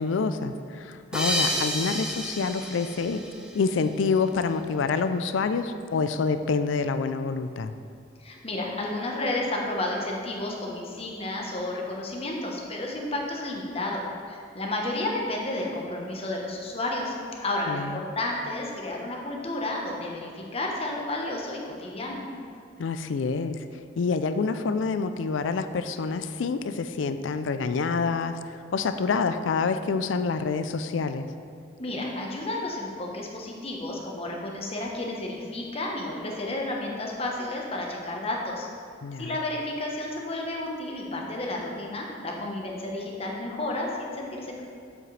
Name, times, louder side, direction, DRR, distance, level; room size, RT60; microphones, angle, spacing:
voice 1, 0.0-3.3 3.5-7.7 17.7-18.1 22.8-23.6 24.0-31.3 39.0-39.3, left 4 dB, 90° left, 10 dB, 0.4 m, -27 dB
sound 1, 1.1-4.2, equal, 5° right, 0.8 m, -31 dB
voice 2, 8.2-17.1 17.4-22.2 31.8-38.7 39.2-44.6, left 2 dB, 30° left, -1 dB, 1.0 m, -31 dB
7.6 x 7.4 x 3.3 m, 2.3 s
head